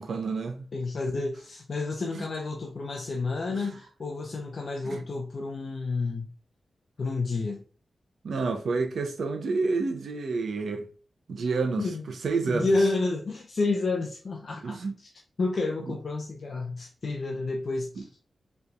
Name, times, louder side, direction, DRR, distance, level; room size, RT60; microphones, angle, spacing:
voice 1, 0.0-0.7 2.1-2.2 3.5-3.7 4.8-5.0 8.2-10.8 11.3-11.9 12.2-12.7 14.6-14.9, right 4 dB, 85° right, 0.9 m, -29 dB
voice 2, 0.7-6.3 7.0-7.6 11.8-12.0 12.5-15.1 15.4-18.1, left 3 dB, 50° left, 0.6 m, -30 dB
5.3 x 3.3 x 2.4 m
wide cardioid pair, 135°, 0 cm